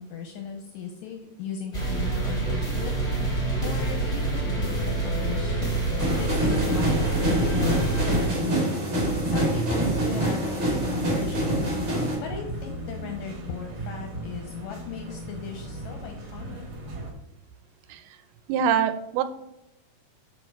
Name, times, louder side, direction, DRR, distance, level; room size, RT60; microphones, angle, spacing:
voice 1, 0.0-3.0 3.6-5.7 6.1-8.3 9.3-16.6, left 6 dB, 80° left, 3 dB, 2.0 m, -37 dB
sound 1, 1.7-8.3, right 2 dB, 30° left, 0.5 m, -26 dB
sound 2, 6.0-12.2, right 1 dB, 25° right, 1.6 m, -26 dB
sound 3, 8.9-17.1, right 3 dB, 50° right, 1.9 m, -36 dB
voice 2, 18.5-19.2, right 8 dB, 80° right, 10 dB, 2.4 m, -24 dB
6.9 x 5.7 x 4.6 m, 0.85 s
omnidirectional pair, 4.7 m